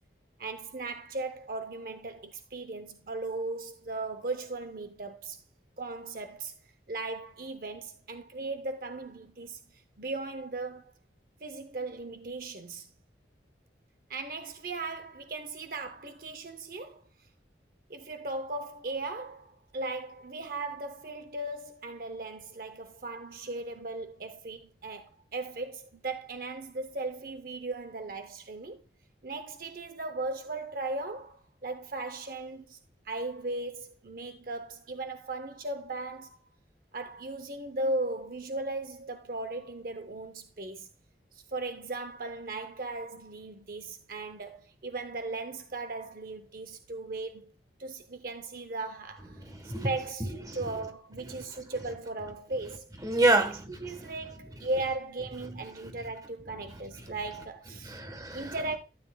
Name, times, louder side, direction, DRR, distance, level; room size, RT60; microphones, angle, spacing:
voice 1, 0.4-5.4 5.8-6.5 6.9-9.6 10.0-10.8 11.4-12.9 14.1-17.0 17.9-28.8 29.2-32.8 33.1-36.4 36.9-40.9 41.3-47.5 47.8-52.9 53.3-53.5 53.8-57.9 58.3-58.8, right 2 dB, 50° right, 0.7 m, -37 dB
voice 2, 49.3-49.9 50.5-50.6 51.3-51.4 53.0-54.1 55.8-55.9 56.6-57.1 57.8-58.5, right 2 dB, 20° right, 1.2 m, -29 dB
13.0 x 9.5 x 2.3 m
head